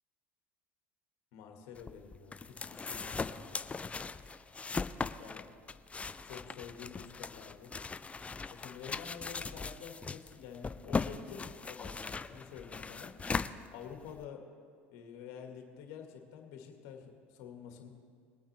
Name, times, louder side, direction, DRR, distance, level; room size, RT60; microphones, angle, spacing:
voice 1, 1.3-3.5 5.2-5.5 6.0-7.8 8.5-13.2 13.7-14.5 14.9-17.9, left 7 dB, 65° left, 3 dB, 1.9 m, -49 dB
sound 1, 1.8-14.2, left 4 dB, 20° left, 0.5 m, -39 dB
21.5 x 8.8 x 3.4 m, 2.2 s
hypercardioid pair, 75°, 7 cm